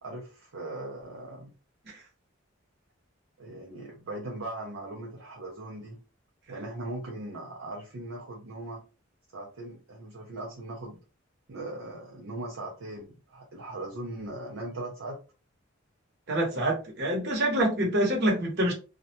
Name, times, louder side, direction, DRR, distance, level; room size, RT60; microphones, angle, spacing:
voice 1, 0.0-1.5 3.4-6.0 6.5-8.8 9.3-11.0 11.5-15.2, right 2 dB, 70° right, -2 dB, 0.6 m, -39 dB
voice 2, 16.3-18.7, right 1 dB, 55° right, 0 dB, 1.0 m, -26 dB
2.3 x 2.1 x 2.7 m, 0.32 s
head